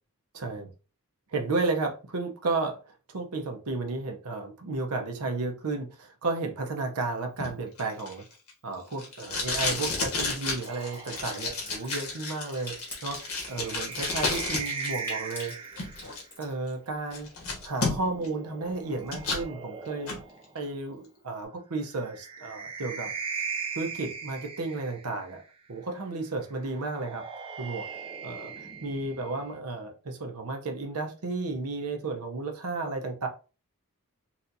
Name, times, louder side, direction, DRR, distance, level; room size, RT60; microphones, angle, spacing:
voice 1, 0.3-0.7 1.3-2.8 3.1-8.2 8.6-12.7 13.0-15.5 16.4-17.3 17.6-20.2 20.5-23.1 23.8-25.4 25.7-27.3 27.6-27.9 28.2-33.3, right 3 dB, 85° right, 0.7 m, -33 dB
Packing tape duct tape, 7.4-14.9 15.2-16.2 16.7-16.8 17.1-18.3 18.6-19.4 19.9-20.2, left 3 dB, 75° left, 1.4 m, -32 dB
Water tap faucet / Sink (filling or washing) / Trickle dribble, 9.6-16.5, left 2 dB, 10° left, 1.4 m, -46 dB
sound 1, 10.7-16.2 17.6-20.6 21.9-25.4 26.6-29.6, right 5 dB, 25° right, 0.4 m, -40 dB
4.2 x 2.4 x 2.6 m
head